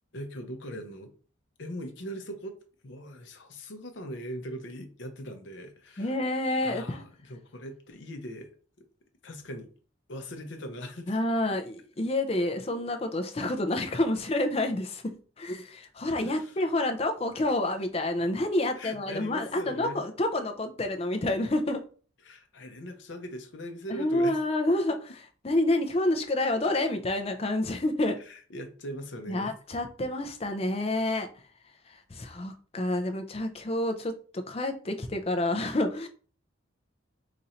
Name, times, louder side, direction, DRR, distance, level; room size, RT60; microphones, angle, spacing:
voice 1, 0.1-1.1 1.6-2.5 2.8-6.1 6.6-8.5 9.2-9.7 10.1-11.2 16.2-16.6 18.8-20.0 22.2-24.4 28.2-29.5 30.0-30.1, equal, 65° left, 0.7 m, -40 dB
voice 2, 6.0-7.0 11.1-15.0 15.4-21.8 23.9-28.2 29.3-31.3 32.1-34.1 34.5-36.1, left 1 dB, 30° left, 0.5 m, -28 dB
4.0 x 2.6 x 4.3 m
head